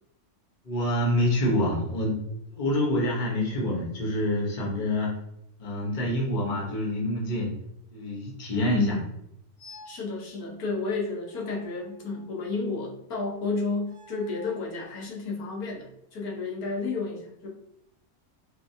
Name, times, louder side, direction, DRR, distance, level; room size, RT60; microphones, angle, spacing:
voice 1, 0.6-2.2 2.6-5.1 5.6-7.5 7.9-9.0, left 1 dB, 35° left, -4 dB, 1.1 m, -26 dB
voice 2, 8.7-9.1 9.9-17.5, left 3 dB, 90° left, -2 dB, 1.4 m, -31 dB
sound 1, 9.6-10.1 11.2-12.5 13.8-14.7, left 2 dB, 30° right, 1.2 m, -51 dB
4.4 x 2.8 x 2.7 m, 0.79 s
omnidirectional pair, 1.5 m